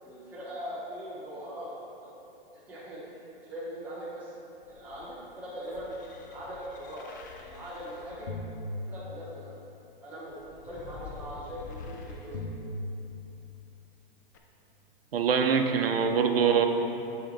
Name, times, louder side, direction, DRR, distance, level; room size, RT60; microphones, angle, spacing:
voice 1, 0.0-2.1 2.7-4.3 4.7-5.9 6.3-7.1 7.4-8.3 8.9-9.5 10.0-10.4 10.6-12.5, equal, 5° right, -11 dB, 1.5 m, -41 dB
sound 1, 4.6-9.5 10.3-13.6 14.3-14.4, left 2 dB, 20° left, 0.3 m, -42 dB
voice 2, 15.1-16.7, right 6 dB, 80° right, 5 dB, 0.8 m, -24 dB
7.9 x 5.1 x 4.2 m, 2.9 s
hypercardioid pair, 155°, 29 cm